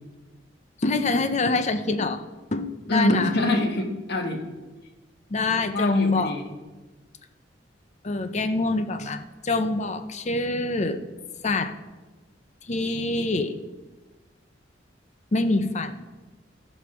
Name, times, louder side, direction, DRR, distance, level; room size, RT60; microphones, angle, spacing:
voice 1, 0.8-2.2 2.5-3.3 5.3-6.3 8.0-11.0 11.4-11.7 12.7-13.6 15.3-16.0, left 2 dB, 35° left, 10 dB, 0.7 m, -25 dB
voice 2, 2.9-4.4 5.5-6.4, left 1 dB, 60° left, 4 dB, 1.5 m, -25 dB
15.0 x 5.4 x 6.1 m, 1.2 s
head